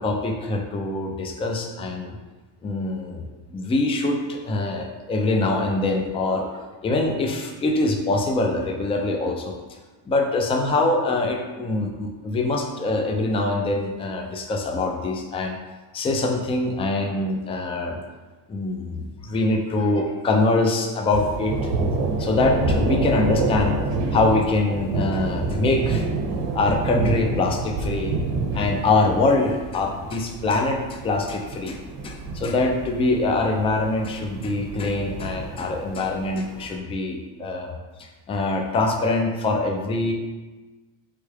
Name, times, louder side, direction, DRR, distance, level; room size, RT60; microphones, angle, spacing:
voice 1, 0.0-2.2 2.6-9.5 10.1-15.6 15.9-18.0 18.5-21.5 22.2-23.8 24.1-26.1 26.5-28.2 28.5-31.8 32.0-37.7 38.0-40.1, left 2 dB, 15° left, 3 dB, 0.3 m, -24 dB
Thunder, 21.1-36.7, right 3 dB, 80° right, 1.1 m, -28 dB
4.4 x 3.4 x 3.3 m, 1.3 s
cardioid pair, 110°, 48 cm